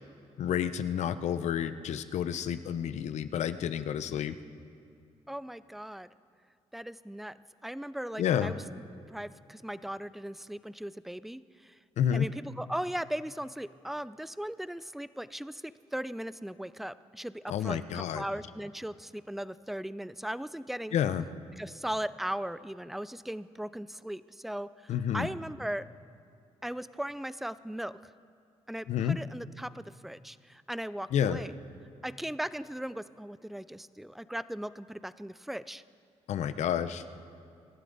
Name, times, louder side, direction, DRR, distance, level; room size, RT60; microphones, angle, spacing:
voice 1, 0.4-4.3 8.2-8.5 12.0-12.3 17.5-18.2 20.9-21.2 24.9-25.3 28.9-29.2 31.1-31.4 36.3-37.0, left 9 dB, 75° left, 12 dB, 0.7 m, -30 dB
voice 2, 5.3-6.1 6.7-7.4 7.6-8.6 9.1-11.8 12.1-21.0 21.6-25.9 26.6-28.1 28.7-31.5 32.0-35.8, right 1 dB, ahead, 16 dB, 0.3 m, -38 dB
24.5 x 12.5 x 4.0 m, 2.6 s
cardioid pair, 130°, 12 cm